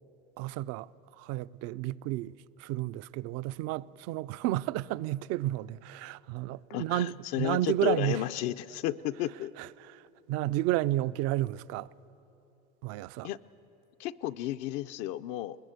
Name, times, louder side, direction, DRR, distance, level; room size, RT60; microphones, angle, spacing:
voice 1, 0.4-0.9 1.2-2.3 2.6-8.2 9.6-10.0 10.3-11.9 12.8-13.3, right 15 dB, 60° right, 0.5 m, -31 dB
voice 2, 6.7-9.5 13.2-13.4 14.0-15.6, left 13 dB, 60° left, 0.6 m, -33 dB
21.5 x 20.0 x 8.0 m
supercardioid pair, 110°, 29 cm